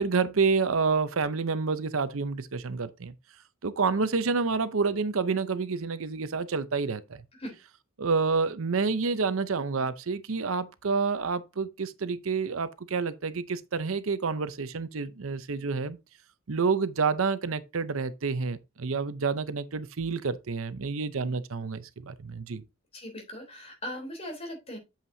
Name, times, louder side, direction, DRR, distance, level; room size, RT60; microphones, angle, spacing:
voice 1, 0.0-3.1 3.6-7.2 8.0-16.0 16.5-22.6, right 4 dB, 75° right, 0.7 m, -28 dB
voice 2, 22.9-24.8, equal, 30° left, 3.4 m, -39 dB
8.4 x 7.4 x 2.7 m
head